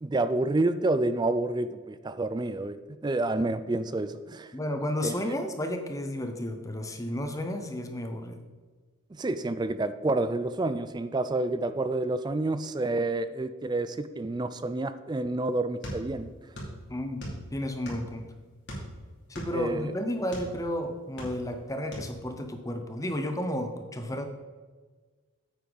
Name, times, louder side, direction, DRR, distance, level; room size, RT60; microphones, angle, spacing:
voice 1, 0.0-2.8 3.0-4.5 5.0-5.2 9.1-16.3 19.5-19.9, right 2 dB, 20° right, 12 dB, 0.3 m, -29 dB
voice 2, 4.5-8.4 16.9-17.2 17.5-18.3 19.3-24.2, left 1 dB, 15° left, 6 dB, 0.8 m, -32 dB
sound 1, 15.8-16.8 17.0-18.2 18.6-20.5 21.0-21.6 21.9-22.1, equal, 55° left, 2.7 m, -39 dB
9.4 x 8.4 x 4.0 m, 1.4 s
head